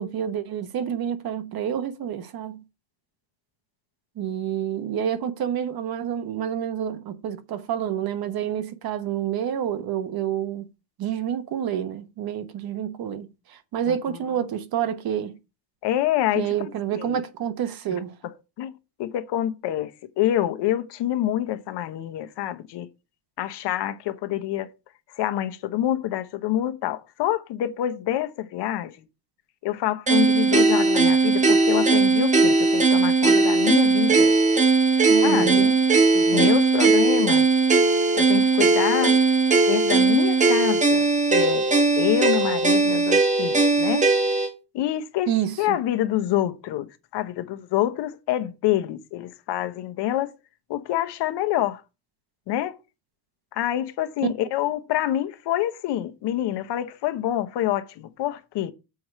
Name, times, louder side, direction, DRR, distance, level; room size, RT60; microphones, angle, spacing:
voice 1, 0.0-2.6 4.2-10.7 11.0-15.4 16.3-18.2 35.1-35.8 36.3-36.6 45.3-45.8 54.2-54.3, right 9 dB, 60° right, 1.2 m, -28 dB
voice 2, 13.9-14.2 15.8-17.2 17.9-18.0 18.6-22.9 23.4-24.7 25.2-28.9 29.6-34.4 35.2-35.7 36.1-37.5 38.1-39.2 39.5-41.7 42.0-44.1 44.7-45.3 45.6-50.3 50.7-51.8 52.5-52.8 53.5-58.7, left 12 dB, 80° left, 1.1 m, -27 dB
sound 1, 30.1-44.5, right 3 dB, 15° right, 1.2 m, -19 dB
7.0 x 4.8 x 6.1 m
cardioid pair, 145°, 41 cm